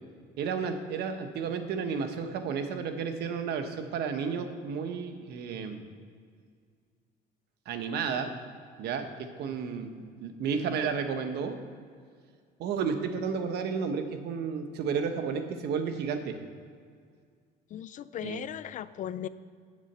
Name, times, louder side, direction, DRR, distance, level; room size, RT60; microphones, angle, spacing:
voice 1, 0.4-5.8 7.7-8.3 8.8-9.1 9.4-11.6 12.6-16.4 18.2-18.4, right 6 dB, 75° right, 7 dB, 1.1 m, -32 dB
voice 2, 17.7-19.3, left 10 dB, 50° left, 15 dB, 0.4 m, -37 dB
8.3 x 7.3 x 6.7 m, 2.1 s
cardioid pair, 110°, 17 cm